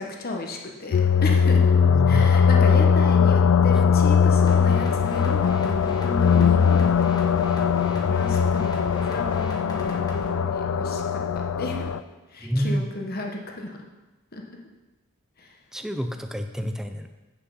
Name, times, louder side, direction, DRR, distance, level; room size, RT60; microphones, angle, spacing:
voice 1, 0.0-1.8 2.1-7.6 8.0-11.9 12.3-13.8 14.3-14.4 15.4-15.6, left 2 dB, 45° left, 1 dB, 1.2 m, -34 dB
sound 1, 0.9-12.0, left 6 dB, 70° left, 0.4 m, -20 dB
voice 2, 1.8-2.3 12.4-12.9 15.7-17.1, equal, ahead, 6 dB, 0.5 m, -28 dB
sound 2, 4.5-10.3, left 1 dB, 20° left, 1.4 m, -40 dB
8.3 x 6.7 x 5.6 m, 1.1 s
head